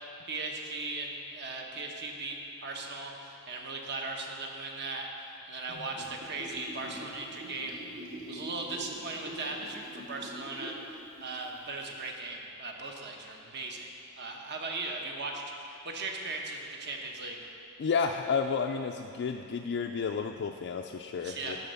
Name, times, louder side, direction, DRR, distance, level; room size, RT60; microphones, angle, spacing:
voice 1, 0.3-5.1 5.4-7.8 8.3-10.7 11.2-17.4 21.2-21.6, right 3 dB, 50° right, 1 dB, 1.0 m, -38 dB
Gurgling / Bathtub (filling or washing), 5.7-10.8 11.2-11.3, equal, 75° right, 2.2 m, -43 dB
voice 2, 17.8-21.6, left 5 dB, 50° left, 3 dB, 0.3 m, -31 dB
12.5 x 4.2 x 6.7 m, 2.9 s
head